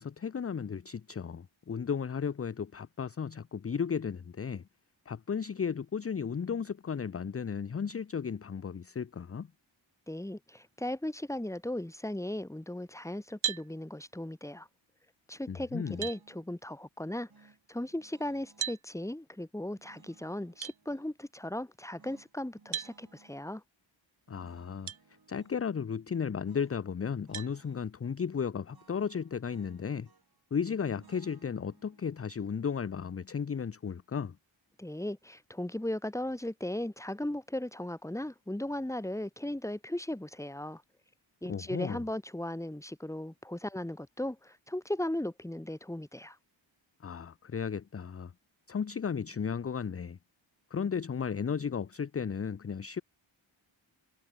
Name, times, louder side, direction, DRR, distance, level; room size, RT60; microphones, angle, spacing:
voice 1, 0.0-4.6 5.1-9.5 15.5-16.1 24.3-24.9 25.3-30.1 30.5-34.3 41.5-42.0 47.0-48.3 48.7-50.2 50.7-53.0, left 6 dB, 30° left, 0.5 m, -34 dB
voice 2, 10.1-14.7 15.3-17.3 17.7-23.6 34.8-40.8 41.4-46.3, left 1 dB, 5° left, 1.5 m, -37 dB
sound 1, 13.4-13.7 15.4-15.5 16.0-16.2 18.6-18.8 20.6-20.8 22.7-22.9 24.9-25.0 25.7-25.8 27.3-27.5, right 10 dB, 80° right, 0.9 m, -35 dB
sound 2, 15.8-16.5 17.3-18.8 19.8-21.2 22.0-23.4 24.3-25.6 26.4-26.8 27.1-27.9 28.7-30.4 30.9-34.0, right 4 dB, 50° right, 5.4 m, -63 dB
wide cardioid pair, 115°, 48 cm